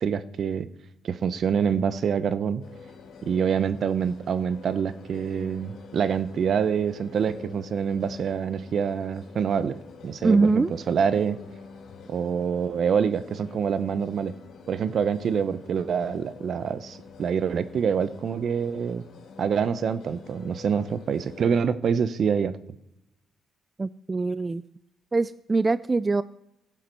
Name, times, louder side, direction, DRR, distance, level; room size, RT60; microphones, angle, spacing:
voice 1, 0.0-0.7 1.0-2.6 3.2-9.8 10.0-11.4 12.1-14.3 14.7-19.0 19.4-22.6, right 7 dB, 60° right, 14 dB, 0.7 m, -26 dB
sound 1, 2.6-21.6, left 4 dB, 80° left, 3.3 m, -46 dB
voice 2, 10.2-10.7 23.8-24.6 25.1-26.2, right 3 dB, 25° right, 15 dB, 0.3 m, -23 dB
16.5 x 7.5 x 5.3 m, 0.87 s
cardioid pair, 90°, 0 cm